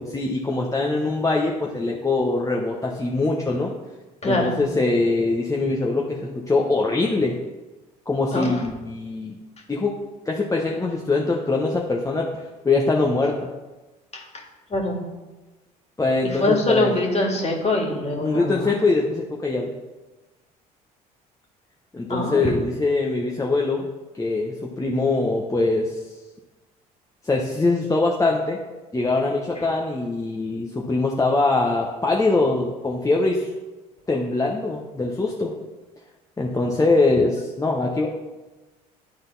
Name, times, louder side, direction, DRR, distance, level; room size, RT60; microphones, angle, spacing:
voice 1, 0.0-3.7 4.2-7.4 8.1-9.4 9.7-9.9 10.2-13.5 16.0-16.9 18.2-19.7 21.9-23.9 24.2-26.1 27.2-28.6 28.9-33.5 34.1-35.5 36.4-38.1, left 3 dB, 15° left, -2 dB, 1.0 m, -23 dB
voice 2, 4.2-4.6 8.3-8.6 14.1-14.4 14.7-15.0 16.2-18.8 22.1-22.5 29.6-29.7, left 2 dB, 35° left, 0 dB, 2.2 m, -23 dB
11.0 x 3.9 x 4.0 m, 1.2 s
hypercardioid pair, 60°, 19 cm